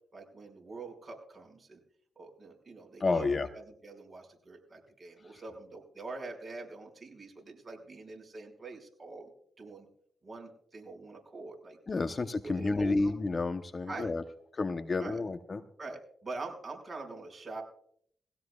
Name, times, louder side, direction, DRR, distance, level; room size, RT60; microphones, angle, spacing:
voice 1, 0.1-1.8 2.2-9.3 9.6-9.9 10.2-11.8 12.1-12.2 12.4-13.1 13.9-14.1 15.0-15.2 15.8-17.6, right 3 dB, 35° right, 1 dB, 5.5 m, -44 dB
voice 2, 3.0-3.5 11.9-14.2 14.5-15.6, left 3 dB, 40° left, 9 dB, 0.9 m, -30 dB
20.5 x 17.0 x 2.4 m, 0.63 s
cardioid pair, 65°, 0 cm